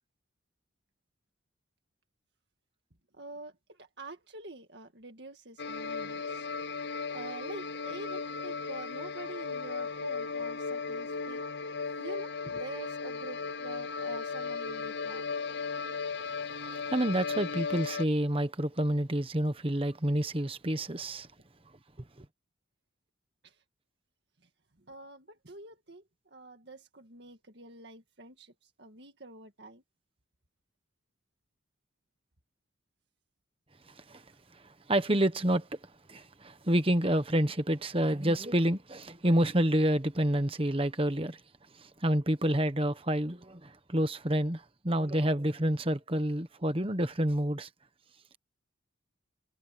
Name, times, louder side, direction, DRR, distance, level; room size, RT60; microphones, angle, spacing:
voice 1, 3.1-11.4 12.0-15.2 23.4-23.6 24.8-29.8, right 2 dB, 55° right, 2.0 m, -46 dB
sound 1, 5.6-18.1, left 4 dB, 55° left, 0.7 m, -36 dB
voice 2, 16.9-21.3 34.1-34.2 34.9-35.7 36.1-41.4 41.8-47.7, right 1 dB, 25° right, 1.3 m, -28 dB
head